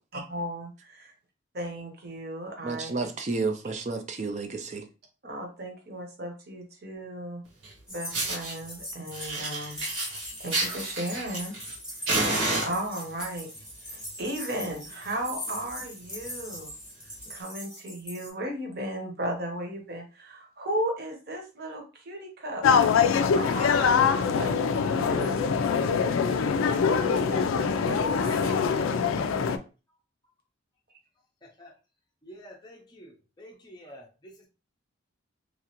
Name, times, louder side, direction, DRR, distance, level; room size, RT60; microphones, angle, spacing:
voice 1, 0.3-1.1 1.5-2.9 5.2-7.4 7.9-9.8 10.4-11.5 12.6-13.5 13.9-16.7 17.3-22.6 23.3-25.3 27.0-28.6, right 1 dB, 50° right, 0.9 m, -35 dB
voice 2, 2.6-4.9, right 3 dB, 35° right, 0.4 m, -31 dB
Fire, 7.6-7.7 8.1-8.5 9.1-11.7 12.1-13.2 14.0-14.3 14.6-14.7 15.1-15.2 15.4-15.7 16.2-16.3 17.3-17.4, right 2 dB, 85° right, 1.3 m, -30 dB
sound 1, 7.9-18.3, left 1 dB, 5° right, 0.8 m, -41 dB
sound 2, 22.6-29.6, left 6 dB, 80° left, 0.3 m, -23 dB
voice 3, 31.4-31.7 32.2-34.5, equal, 20° left, 0.5 m, -49 dB
2.9 x 2.4 x 2.9 m
head